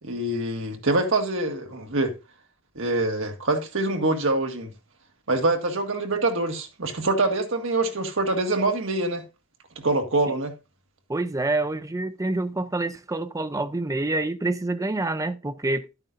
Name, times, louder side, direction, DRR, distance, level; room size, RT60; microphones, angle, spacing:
voice 1, 0.0-2.1 2.7-4.7 5.3-9.2 9.7-10.5, right 2 dB, 60° right, 1.7 m, -25 dB
voice 2, 11.1-15.9, right 2 dB, 15° right, 0.5 m, -27 dB
11.0 x 8.9 x 2.5 m
head